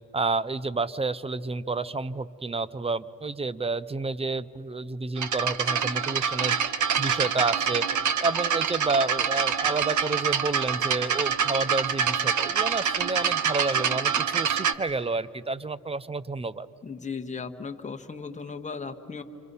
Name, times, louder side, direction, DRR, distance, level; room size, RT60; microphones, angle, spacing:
voice 1, 0.1-6.6 7.0-7.9 8.2-16.7, right 3 dB, 15° right, 17 dB, 0.5 m, -30 dB
sound 1, 5.2-14.7, right 7 dB, 55° right, 1.1 m, -26 dB
voice 2, 16.8-19.2, left 5 dB, 20° left, 5 dB, 1.2 m, -36 dB
29.0 x 26.0 x 5.5 m, 2.9 s
cardioid pair, 90°, 36 cm